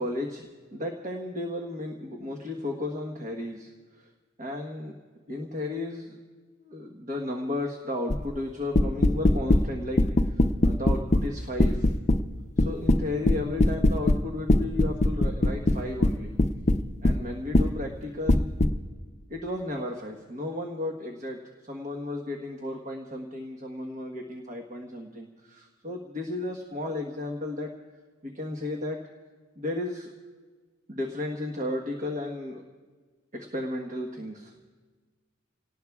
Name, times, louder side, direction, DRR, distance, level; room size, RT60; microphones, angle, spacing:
voice 1, 0.0-4.1 4.4-4.9 5.3-6.2 6.6-11.9 12.6-16.3 17.0-18.5 19.3-27.7 28.2-29.0 29.6-30.1 30.9-32.6 33.3-34.5, left 2 dB, 40° right, 1 dB, 1.2 m, -34 dB
sound 1, 8.1-8.3 8.7-9.6 10.0-11.3 11.6-12.2 12.6-14.2 14.5-17.2 17.5-17.7 18.3-18.7, left 1 dB, 35° left, 0.6 m, -21 dB
29.5 x 18.5 x 2.4 m, 1.5 s
head